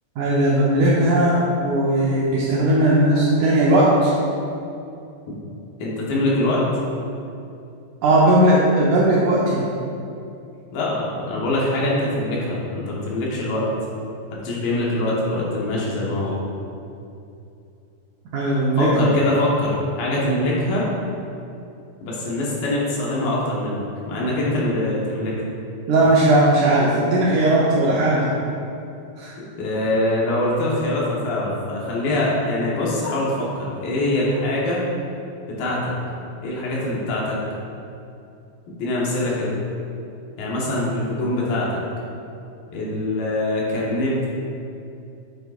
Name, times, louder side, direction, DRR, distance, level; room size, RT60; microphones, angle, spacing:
voice 1, 0.2-4.1 8.0-9.6 18.3-19.1 25.9-28.3 29.2-29.3, right 1 dB, 75° right, -6 dB, 1.9 m, -17 dB
voice 2, 5.8-6.6 10.7-12.6 12.9-13.7 14.4-16.4 18.8-20.9 22.0-25.4 29.6-34.8 35.5-35.9 36.4-37.4 38.7-39.6 40.4-41.8 42.7-44.3, left 1 dB, 75° left, -5 dB, 2.9 m, -23 dB
7.8 x 7.5 x 2.4 m, 2.6 s
omnidirectional pair, 4.3 m